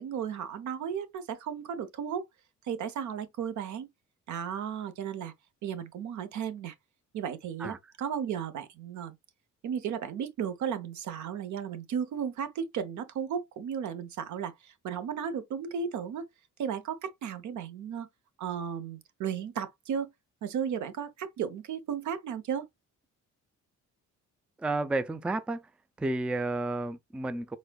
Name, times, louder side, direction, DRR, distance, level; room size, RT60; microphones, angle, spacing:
voice 1, 0.0-2.3 2.6-3.9 4.3-5.3 5.6-6.7 7.1-9.2 9.6-16.3 16.6-18.1 18.4-20.1 20.4-22.7, right 8 dB, 75° right, 0.8 m, -34 dB
voice 2, 24.6-25.7 26.0-27.6, right 2 dB, 5° right, 0.3 m, -31 dB
4.3 x 3.5 x 2.3 m
cardioid pair, 90°, 30 cm